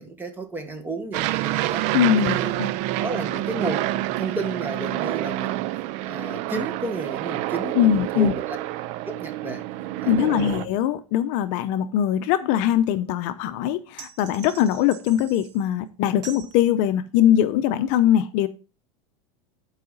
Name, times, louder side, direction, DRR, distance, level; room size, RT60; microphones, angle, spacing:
voice 1, 0.0-1.9 2.3-2.6 3.0-8.6 9.1-9.6 10.0-10.7, right 2 dB, 15° right, 1.5 m, -32 dB
Aircraft, 1.1-10.6, right 16 dB, 50° right, 0.4 m, -28 dB
voice 2, 1.9-2.7 7.8-8.3 10.1-18.5, left 10 dB, 55° left, 0.7 m, -21 dB
sound 1, 14.0-15.6 16.2-16.6, right 8 dB, 90° right, 1.2 m, -43 dB
10.5 x 4.8 x 4.0 m
supercardioid pair, 145°, 15 cm